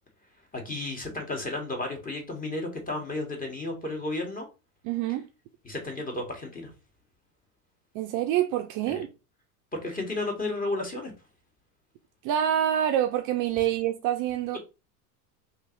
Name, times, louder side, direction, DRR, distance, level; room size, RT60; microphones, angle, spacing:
voice 1, 0.5-4.5 5.6-6.7 8.8-9.0 9.7-11.1, left 2 dB, 15° left, 1.6 m, -33 dB
voice 2, 4.8-5.2 7.9-9.1 12.2-14.6, right 11 dB, 45° right, 0.5 m, -26 dB
3.0 x 2.6 x 4.4 m
hypercardioid pair, 95°, 47 cm